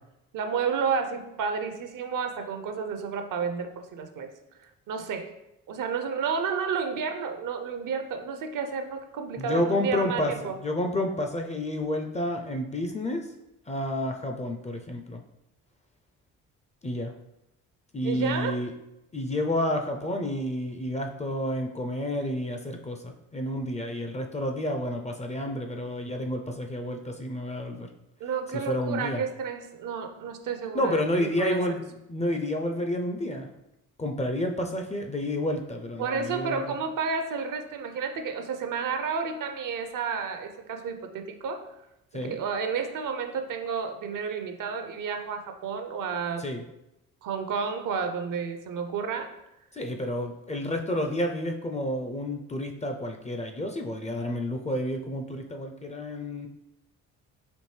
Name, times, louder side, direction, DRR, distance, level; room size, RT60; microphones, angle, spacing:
voice 1, 0.3-4.3 4.6-5.3 5.7-10.6 18.0-18.5 28.2-31.6 36.0-41.6 42.1-46.4 47.2-49.3, right 5 dB, 60° right, 6 dB, 0.6 m, -31 dB
voice 2, 9.4-13.3 13.7-15.2 16.8-17.1 17.9-18.7 19.1-27.9 28.5-29.2 30.7-31.8 32.1-33.5 34.0-36.6 42.1-42.4 46.4-46.6 49.7-56.5, left 1 dB, 20° left, 4 dB, 0.4 m, -30 dB
4.4 x 2.6 x 3.2 m, 0.88 s
supercardioid pair, 55°, 37 cm